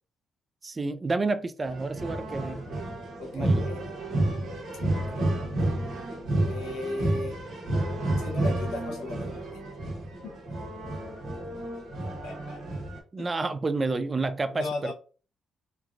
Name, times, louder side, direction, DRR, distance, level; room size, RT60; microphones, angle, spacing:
voice 1, 0.6-2.7 3.3-3.7 13.1-14.9, right 3 dB, 30° right, 0.3 m, -29 dB
sound 1, 1.6-13.0, right 1 dB, 70° right, 1.0 m, -30 dB
voice 2, 3.2-3.9 4.9-5.3 6.4-7.4 8.2-9.6 10.2-10.4 12.2-12.8 13.2-13.3 14.5-14.9, left 2 dB, 90° left, 0.7 m, -36 dB
3.1 x 2.3 x 2.4 m
cardioid pair, 90°, 0 cm